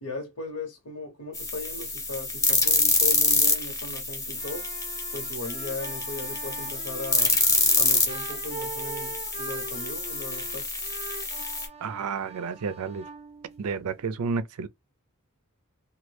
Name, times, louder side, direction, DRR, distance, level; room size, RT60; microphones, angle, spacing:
voice 1, 0.0-4.7 5.1-7.4 7.8-10.7, left 2 dB, 80° left, 1.0 m, -37 dB
sound 1, 1.3-11.7, left 3 dB, 15° left, 0.7 m, -26 dB
sound 2, 4.3-14.0, right 4 dB, 30° right, 0.5 m, -42 dB
voice 2, 11.8-13.1 13.6-14.7, right 5 dB, 80° right, 0.4 m, -31 dB
3.1 x 2.3 x 3.2 m
head